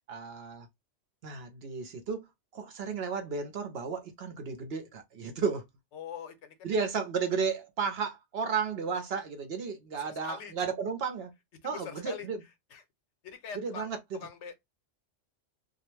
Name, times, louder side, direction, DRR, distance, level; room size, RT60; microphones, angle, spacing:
voice 1, 0.1-0.7 1.2-2.3 2.5-5.6 6.6-11.3 11.6-12.4 13.5-14.2, right 5 dB, 65° right, 0.7 m, -33 dB
voice 2, 5.9-6.8 9.9-10.5 11.6-12.3 12.7-12.8 13.2-14.6, left 7 dB, 75° left, 0.9 m, -43 dB
2.3 x 2.0 x 3.0 m
omnidirectional pair, 1.3 m